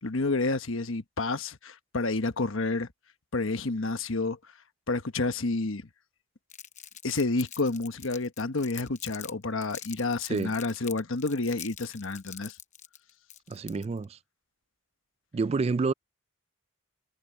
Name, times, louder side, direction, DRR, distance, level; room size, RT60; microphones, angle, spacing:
voice 1, 0.0-2.9 3.3-4.4 4.9-5.9 7.0-12.6, left 3 dB, 70° left, 1.2 m, -29 dB
Crumpling crinkling, 6.5-9.3 9.6-14.0, left 10 dB, 35° left, 0.9 m, -44 dB
voice 2, 13.5-14.2 15.3-15.9, right 4 dB, 30° right, 0.3 m, -28 dB
head